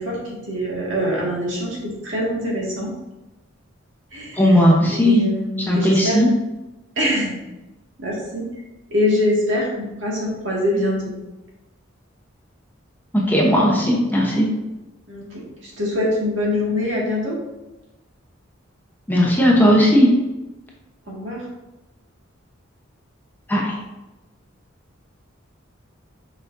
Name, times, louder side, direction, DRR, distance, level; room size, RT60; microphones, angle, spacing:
voice 1, 0.0-2.9 4.1-6.2 7.0-7.4 8.0-8.4 8.9-11.1 15.1-17.4 21.1-21.5, left 1 dB, 65° right, -4 dB, 2.0 m, -24 dB
voice 2, 4.4-5.2 5.7-6.3 13.3-14.5 19.1-20.1 23.5-23.7, equal, 10° left, -3 dB, 0.9 m, -16 dB
6.9 x 5.1 x 2.7 m, 1.0 s
head